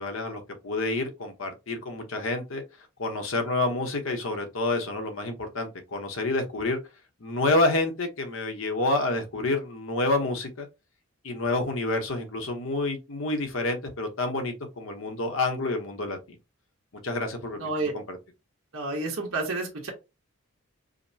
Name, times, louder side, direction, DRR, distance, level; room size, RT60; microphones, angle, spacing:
voice 1, 0.0-2.6 3.0-6.8 7.2-10.7 11.2-16.4 17.0-18.2, left 2 dB, 70° left, 1.0 m, -28 dB
voice 2, 17.6-17.9 18.7-19.9, right 2 dB, 75° right, 1.1 m, -30 dB
5.0 x 2.1 x 2.7 m
head